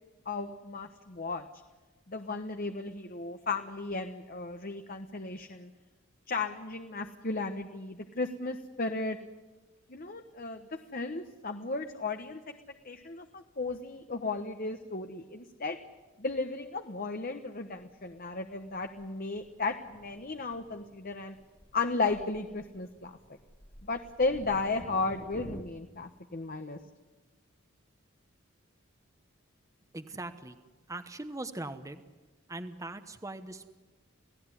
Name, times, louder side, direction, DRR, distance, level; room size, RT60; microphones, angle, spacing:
voice 1, 0.2-1.4 2.1-5.7 6.3-9.2 9.9-12.4 12.8-15.8 16.2-21.3 21.7-23.2 23.8-26.8, left 3 dB, 45° left, 6 dB, 1.2 m, -34 dB
Thunder, 17.7-25.6, equal, 10° left, 1.1 m, -52 dB
voice 2, 29.9-30.6 30.9-32.0 32.5-33.7, right 2 dB, 15° right, 9 dB, 1.1 m, -40 dB
28.5 x 17.0 x 9.9 m, 1.2 s
head